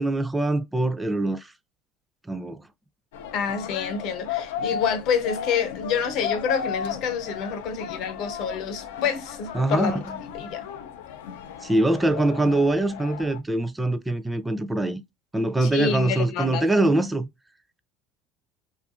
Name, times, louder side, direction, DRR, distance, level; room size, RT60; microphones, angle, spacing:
voice 1, 0.0-1.5 2.3-2.6 9.5-10.0 11.6-15.0 15.3-17.3, right 2 dB, 10° right, 0.4 m, -23 dB
sound 1, 3.1-13.4, left 7 dB, 85° left, 0.4 m, -34 dB
voice 2, 3.3-10.0 10.3-10.7 15.6-16.7, left 6 dB, 65° left, 0.9 m, -28 dB
2.6 x 2.5 x 2.4 m
hypercardioid pair, 80°, 0 cm